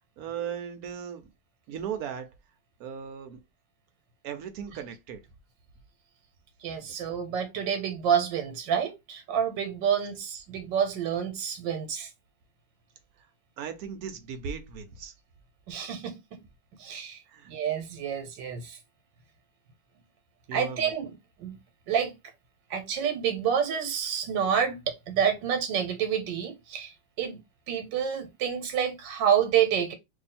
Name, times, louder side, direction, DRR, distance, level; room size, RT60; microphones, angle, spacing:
voice 1, 0.2-1.2 1.7-2.3 2.8-3.4 4.2-5.2 13.6-15.1 17.3-17.5 20.5-20.9, right 7 dB, 65° right, 1.0 m, -37 dB
voice 2, 6.6-12.1 15.7-16.4 16.8-17.2 17.5-18.8 20.5-21.6 21.9-22.1 22.7-27.4 27.7-29.9, right 8 dB, 85° right, 1.5 m, -28 dB
2.8 x 2.7 x 4.1 m
omnidirectional pair, 2.0 m